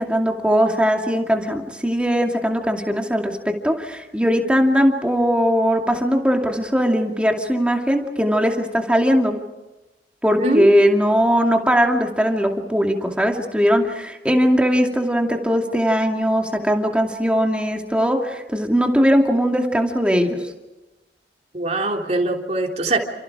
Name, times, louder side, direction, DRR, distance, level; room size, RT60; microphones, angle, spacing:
voice 1, 0.0-9.4 10.2-20.4, equal, 5° right, 2 dB, 2.5 m, -19 dB
voice 2, 21.5-23.0, right 2 dB, 40° right, 1 dB, 3.5 m, -22 dB
30.0 x 28.5 x 4.9 m, 1.1 s
head